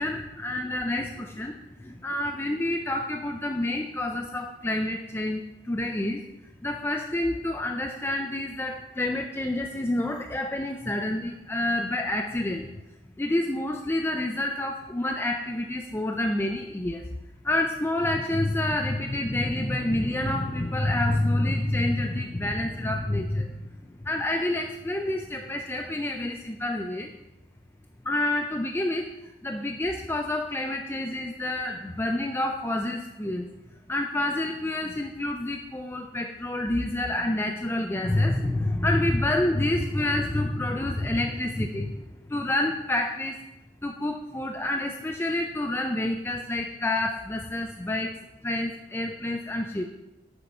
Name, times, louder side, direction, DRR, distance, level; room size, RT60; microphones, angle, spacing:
voice 1, 0.0-1.5 1.8-6.2 6.6-12.8 13.2-17.0 17.4-23.7 24.0-27.1 28.0-29.1 29.4-33.5 33.9-43.4 43.8-48.1 48.4-49.9, left 1 dB, 10° left, 3 dB, 0.4 m, -28 dB
9.7 x 6.6 x 4.4 m, 1.0 s
head